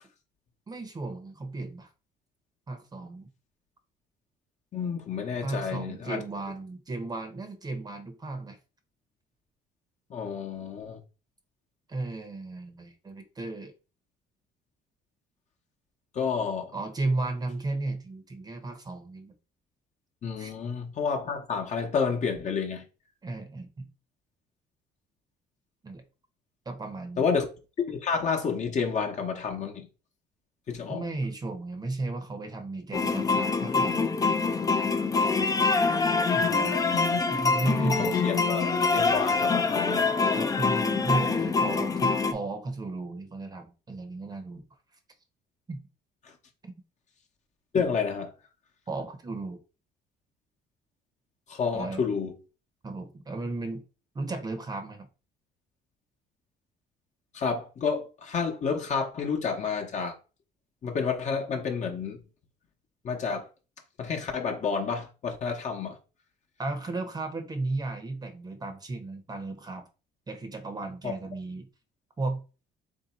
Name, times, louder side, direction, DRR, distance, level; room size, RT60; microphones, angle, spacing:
voice 1, 0.7-1.9 2.7-3.3 5.4-8.6 11.9-13.7 16.7-19.3 20.4-20.5 23.2-23.9 25.8-26.0 26.7-27.3 30.9-34.1 36.3-36.9 37.3-38.2 40.3-44.6 45.7-45.8 48.9-49.6 51.7-52.0 52.8-53.8 54.1-55.1 66.6-69.9 70.3-71.7 72.2-72.4, right 2 dB, 25° right, 0.8 m, -34 dB
voice 2, 4.7-6.2 10.1-11.0 16.1-16.7 20.2-22.8 27.2-27.5 27.9-29.9 30.7-31.0 36.9-37.2 37.6-38.6 38.9-40.1 47.7-48.3 51.5-52.3 57.3-60.2 60.8-62.2 63.0-63.5 64.0-66.0 71.0-71.1, left 5 dB, 45° left, 0.9 m, -30 dB
sound 1, 32.9-42.3, left 4 dB, 20° left, 0.4 m, -25 dB
3.3 x 2.7 x 4.2 m
cardioid pair, 110°, 17 cm